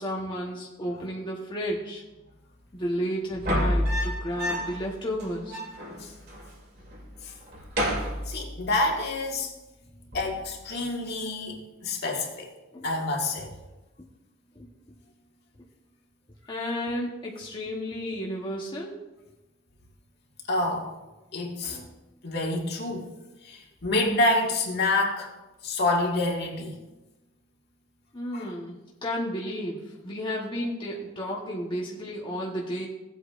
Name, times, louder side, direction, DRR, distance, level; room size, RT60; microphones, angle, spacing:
voice 1, 0.0-2.0 2.7-5.6 12.7-12.9 14.6-14.7 16.5-18.9 28.1-32.9, equal, 25° left, -3 dB, 1.1 m, -32 dB
sound 1, 3.3-4.9 5.2-5.3 5.5-6.5 6.8-7.1 7.5-8.9 10.1-10.5, equal, 50° right, 2.7 m, -29 dB
voice 2, 8.3-9.5 10.1-12.5 12.8-13.5 20.5-20.9 21.3-21.9 22.2-23.1 23.4-25.3 25.6-26.8 28.3-28.5, left 2 dB, 55° left, -1 dB, 1.9 m, -27 dB
16.5 x 8.2 x 2.5 m, 1.1 s
head